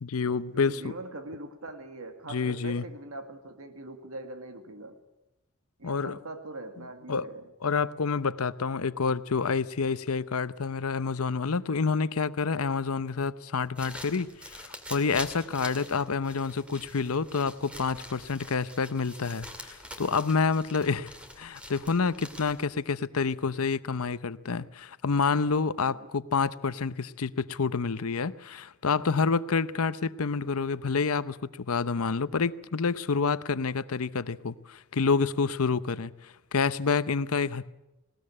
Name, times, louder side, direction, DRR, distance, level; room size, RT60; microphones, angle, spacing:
voice 1, 0.0-0.9 2.3-2.8 5.8-6.2 7.1-7.3 7.6-37.7, left 5 dB, 85° left, 0.8 m, -28 dB
voice 2, 0.5-5.0 5.8-7.5 25.8-26.1, right 2 dB, 80° right, 2.1 m, -42 dB
sound 1, 13.5-22.8, equal, 5° right, 2.1 m, -45 dB
20.0 x 18.5 x 8.6 m
head